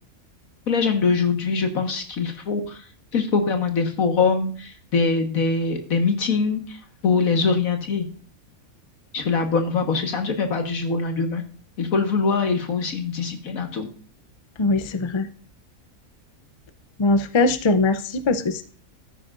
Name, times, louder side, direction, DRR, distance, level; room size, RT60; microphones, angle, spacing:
voice 1, 0.7-2.8 3.1-6.8 7.0-8.1 9.1-11.4 11.8-13.9, left 4 dB, 75° left, 5 dB, 1.9 m, -23 dB
voice 2, 14.6-15.3 17.0-18.6, left 3 dB, 45° left, 12 dB, 0.3 m, -21 dB
12.5 x 10.0 x 2.5 m, 0.42 s
omnidirectional pair, 1.5 m